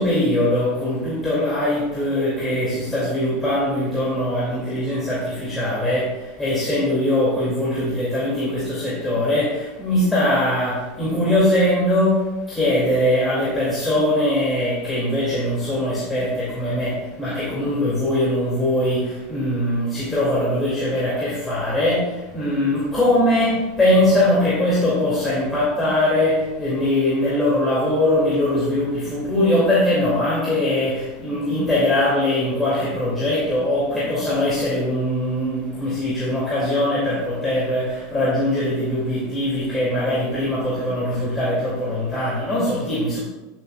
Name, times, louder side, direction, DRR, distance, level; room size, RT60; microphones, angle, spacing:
voice 1, 0.0-43.2, left 1 dB, 10° left, -8 dB, 2.6 m, -21 dB
12.5 x 7.6 x 2.4 m, 1.1 s
supercardioid pair, 160°, 0 cm